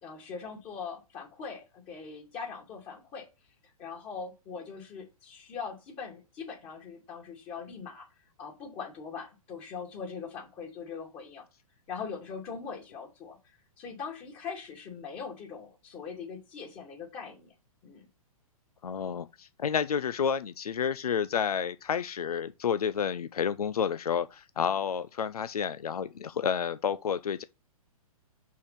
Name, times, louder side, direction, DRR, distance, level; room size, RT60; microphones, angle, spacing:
voice 1, 0.0-3.3 3.6-8.1 8.4-11.4 11.9-17.5 17.8-18.1, left 5 dB, 30° left, 2.6 m, -41 dB
voice 2, 18.8-27.4, left 7 dB, 80° left, 0.6 m, -30 dB
5.7 x 4.7 x 5.7 m
hypercardioid pair, 125°, 19 cm